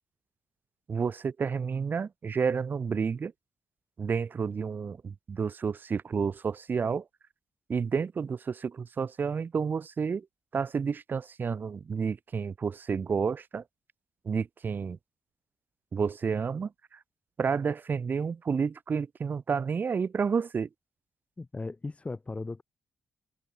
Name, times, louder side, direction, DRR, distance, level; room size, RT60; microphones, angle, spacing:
voice 1, 0.9-3.3 4.0-7.1 7.7-10.3 10.5-13.6 14.2-15.0 15.9-17.0 17.4-20.7, right 6 dB, 40° right, 0.6 m, -30 dB
voice 2, 21.4-22.6, left 3 dB, 25° left, 1.3 m, -37 dB
figure-of-eight pair, 40°, 5 cm